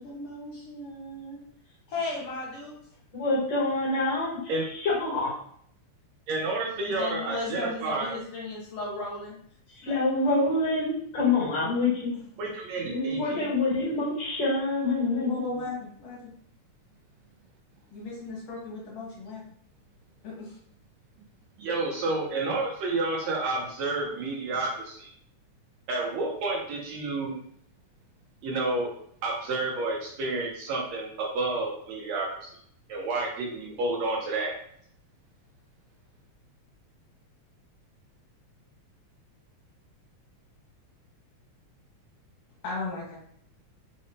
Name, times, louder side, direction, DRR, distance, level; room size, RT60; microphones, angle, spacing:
voice 1, 0.0-1.4 1.9-2.7 6.8-9.4 9.8-10.6 15.2-16.3 17.9-19.4 20.2-20.5 42.6-43.2, left 2 dB, 65° left, -4 dB, 2.1 m, -36 dB
voice 2, 3.2-4.4 4.7-5.4 9.8-12.2 12.9-15.7, left 2 dB, 45° left, -6 dB, 2.1 m, -26 dB
voice 3, 6.3-8.2 12.4-13.5 21.6-25.1 25.9-27.4 28.4-28.9 29.2-32.5 32.9-34.5, right 2 dB, 75° right, -2 dB, 2.0 m, -30 dB
5.1 x 2.7 x 3.1 m, 0.63 s
omnidirectional pair, 3.3 m